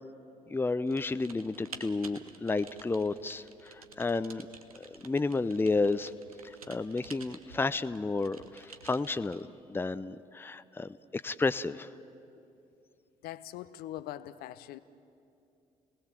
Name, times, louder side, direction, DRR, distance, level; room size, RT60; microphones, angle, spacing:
voice 1, 0.5-4.5 4.8-6.1 6.4-11.9, left 3 dB, 10° left, 0.6 m, -32 dB
Typing, 0.9-9.5, right 5 dB, 85° right, 0.9 m, -51 dB
voice 2, 13.2-14.8, left 13 dB, 60° left, 0.7 m, -42 dB
30.0 x 19.0 x 7.4 m
figure-of-eight pair, 45°, 18 cm